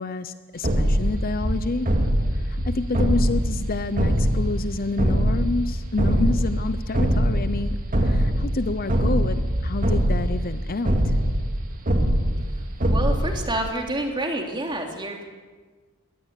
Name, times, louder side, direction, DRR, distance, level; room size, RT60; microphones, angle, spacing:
voice 1, 0.0-1.9 2.3-11.2, left 3 dB, 40° left, 12 dB, 0.8 m, -29 dB
sound 1, 0.6-13.7, equal, 40° right, 2.3 m, -23 dB
voice 2, 12.9-15.3, right 1 dB, 20° right, 2 dB, 3.1 m, -28 dB
22.5 x 18.0 x 8.4 m, 1.4 s
head